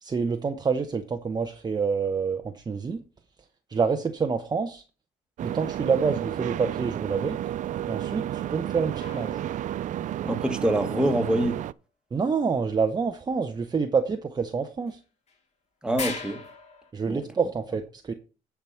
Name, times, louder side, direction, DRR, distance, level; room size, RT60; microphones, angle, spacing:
voice 1, 0.0-3.0 3.7-4.8 5.4-7.4 7.9-9.4 12.1-15.0 16.9-18.1, right 5 dB, 25° right, 0.8 m, -27 dB
sound 1, 5.4-11.7, right 12 dB, 50° right, 0.4 m, -32 dB
sound 2, 9.0-10.3 14.9-15.0 15.3-15.4 16.0-16.9, left 4 dB, 40° left, 2.5 m, -38 dB
voice 2, 10.2-11.6 15.8-16.4 17.1-17.2, right 1 dB, 5° right, 1.6 m, -25 dB
11.0 x 4.7 x 5.7 m
cardioid pair, 110°, 17 cm